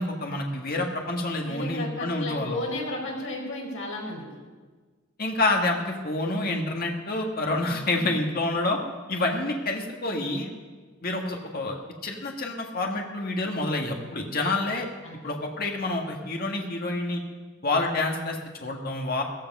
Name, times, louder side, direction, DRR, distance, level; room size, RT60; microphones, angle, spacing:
voice 1, 0.0-2.6 5.2-8.8 9.1-10.5 11.0-11.8 12.0-14.9 15.2-17.2 17.6-19.2, left 2 dB, 45° left, 1 dB, 1.8 m, -28 dB
voice 2, 1.5-4.2 15.0-15.3, left 2 dB, 75° left, -1 dB, 5.0 m, -33 dB
15.5 x 15.0 x 5.5 m, 1.4 s
head